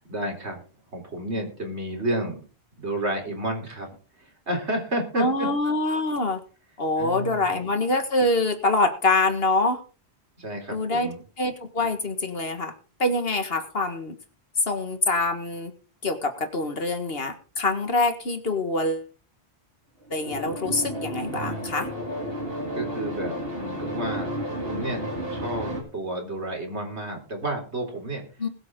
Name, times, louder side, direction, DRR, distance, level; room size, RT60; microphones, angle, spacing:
voice 1, 0.1-0.6 0.9-2.4 2.8-3.9 4.2-5.5 7.0-7.6 10.4-11.2 21.3-21.7 22.7-24.3 24.6-25.0 25.3-28.2, right 1 dB, 90° right, 3 dB, 4.1 m, -31 dB
voice 2, 5.2-6.4 6.8-9.8 10.7-11.1 11.4-12.7 13.0-14.2 14.7-15.7 16.0-19.1 20.1-21.9 28.4-28.5, left 2 dB, 60° left, 7 dB, 2.0 m, -25 dB
sound 1, 20.1-25.8, equal, 60° right, 3.5 m, -32 dB
21.0 x 7.9 x 3.7 m, 0.37 s
omnidirectional pair, 1.1 m